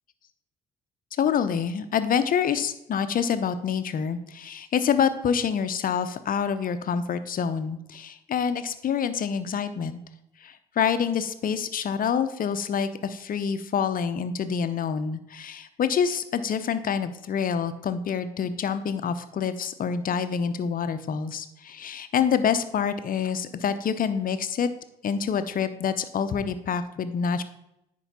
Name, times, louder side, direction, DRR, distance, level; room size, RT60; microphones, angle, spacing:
voice 1, 1.2-10.0 10.4-24.7 25.0-27.4, left 7 dB, 40° left, 11 dB, 0.7 m, -27 dB
10.0 x 4.5 x 4.2 m, 0.83 s
figure-of-eight pair, 45°, 21 cm